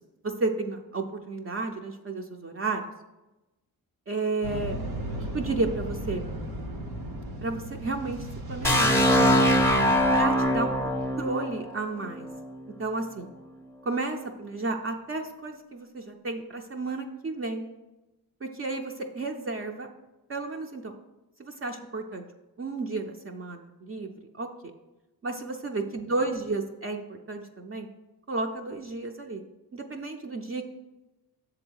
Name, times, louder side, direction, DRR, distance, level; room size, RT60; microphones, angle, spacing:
voice 1, 0.2-2.8 4.1-4.8 5.3-6.2 7.4-9.0 10.1-12.3 12.8-13.3 13.8-17.6 18.4-19.9 20.3-20.9 21.4-22.2 22.6-24.5 25.2-27.9 28.3-29.4 29.7-30.6, right 3 dB, 35° right, 2 dB, 0.6 m, -32 dB
sound 1, 4.4-11.1, right 1 dB, 85° right, 1.5 m, -36 dB
sound 2, 8.6-12.5, equal, 5° left, 0.7 m, -22 dB
7.0 x 3.8 x 6.2 m, 1.0 s
cardioid pair, 100°, 36 cm